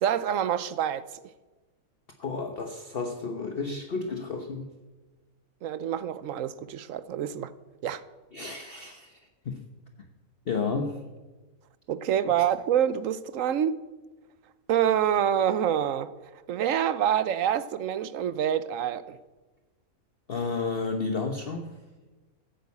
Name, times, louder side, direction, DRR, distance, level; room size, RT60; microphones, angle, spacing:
voice 1, 0.0-1.1 5.6-7.5 7.8-8.0 11.9-13.8 14.7-16.1 16.5-19.2, right 9 dB, 70° right, 1.0 m, -26 dB
voice 2, 2.2-4.7 8.3-9.2 9.4-9.6 10.5-11.0 20.3-21.8, left 4 dB, 45° left, 1.1 m, -32 dB
14.5 x 8.8 x 8.3 m
omnidirectional pair, 1.5 m